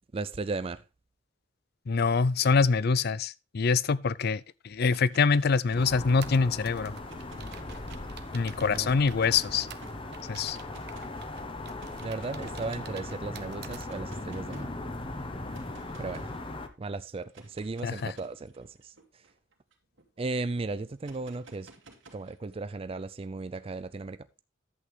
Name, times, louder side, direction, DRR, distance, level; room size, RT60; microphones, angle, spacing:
voice 1, 0.1-0.8 8.5-8.9 12.0-14.7 16.0-16.3 16.8-19.2 20.2-21.7 22.1-24.2, right 3 dB, 30° right, 0.4 m, -36 dB
voice 2, 1.9-6.9 8.3-9.7 10.3-10.6 17.8-18.1, left 5 dB, 55° left, 0.5 m, -25 dB
sound 1, 4.8-6.3 7.0-8.5 9.2-9.9 10.5-11.1 11.8-12.9 13.7-14.8 15.5-16.4 17.2-20.1 21.0-22.6, right 2 dB, 80° right, 2.4 m, -53 dB
sound 2, 5.7-16.7, left 2 dB, 30° left, 1.1 m, -39 dB
sound 3, 5.8-13.9, right 9 dB, 60° right, 0.9 m, -49 dB
11.0 x 8.2 x 3.3 m
head